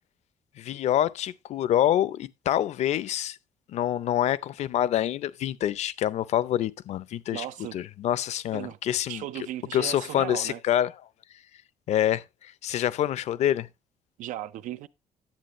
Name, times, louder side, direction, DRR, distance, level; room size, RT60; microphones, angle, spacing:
voice 1, 0.6-3.4 3.7-7.5 7.7-9.2 9.7-10.9 11.9-13.7, left 11 dB, 60° left, 0.6 m, -26 dB
voice 2, 7.3-7.8 8.5-8.8 9.1-10.6 14.2-14.9, right 13 dB, 90° right, 0.6 m, -36 dB
10.5 x 8.4 x 3.0 m
cardioid pair, 170°, 13 cm